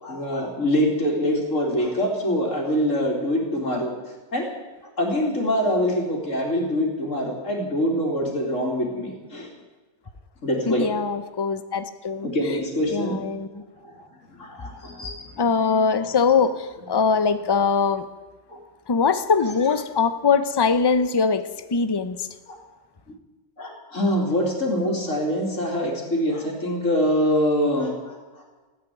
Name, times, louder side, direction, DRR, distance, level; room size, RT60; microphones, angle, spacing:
voice 1, 0.0-3.9 4.3-4.5 5.0-9.5 10.4-10.9 12.2-13.1 13.8-14.1 14.3-16.1 18.5-18.6 22.5-22.6 23.6-28.2, equal, 85° left, 0 dB, 3.5 m, -24 dB
voice 2, 10.7-12.6 12.9-13.6 15.4-18.1 18.9-21.4 21.7-22.3, left 5 dB, 25° left, 12 dB, 0.7 m, -22 dB
15.5 x 10.0 x 9.2 m, 1.3 s
omnidirectional pair, 1.3 m